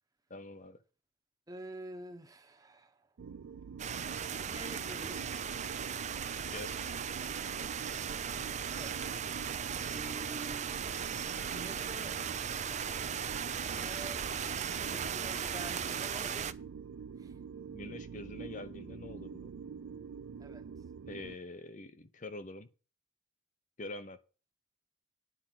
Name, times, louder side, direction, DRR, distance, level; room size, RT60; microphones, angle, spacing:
voice 1, 0.3-0.8 6.5-6.9 12.5-12.6 17.7-19.5 21.1-22.7 23.8-24.2, left 2 dB, 40° left, 0.8 m, -45 dB
voice 2, 1.5-3.1 4.3-5.3 8.7-9.2 9.7-12.2 13.6-16.6 17.2-17.4 20.4-20.7, right 2 dB, 20° right, 1.2 m, -48 dB
sound 1, 3.2-21.4, right 6 dB, 85° right, 0.4 m, -46 dB
sound 2, 3.8-16.5, right 7 dB, 35° right, 0.6 m, -37 dB
10.0 x 5.1 x 7.5 m
head